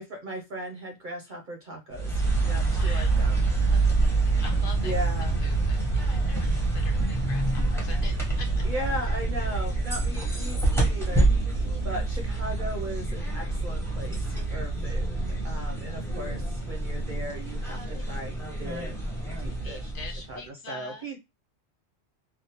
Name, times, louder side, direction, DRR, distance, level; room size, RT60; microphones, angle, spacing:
voice 1, 0.0-2.1 2.4-3.5 4.8-5.4 8.6-19.0 19.4-19.9 20.3-21.2, right 1 dB, 50° right, 2 dB, 0.7 m, -37 dB
sound 1, 1.9-20.4, right 3 dB, 5° left, 0.7 m, -26 dB
voice 2, 2.7-3.2 3.7-4.9 5.4-8.7 19.6-21.1, left 4 dB, 55° left, 4 dB, 0.7 m, -44 dB
3.4 x 2.0 x 2.8 m, 0.23 s
omnidirectional pair, 1.2 m